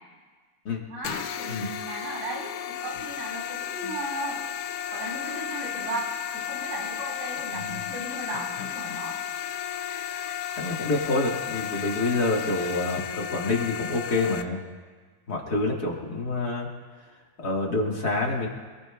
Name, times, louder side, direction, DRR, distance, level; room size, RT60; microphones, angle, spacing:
voice 1, 0.9-4.4 4.9-9.2, right 2 dB, 75° right, -4 dB, 5.8 m, -36 dB
sound 1, 1.0-14.4, left 10 dB, 80° left, 2.2 m, -33 dB
voice 2, 10.6-14.6 15.3-16.7 17.4-18.5, left 2 dB, 40° left, -1 dB, 1.7 m, -27 dB
26.5 x 19.5 x 2.3 m, 1.5 s
omnidirectional pair, 3.7 m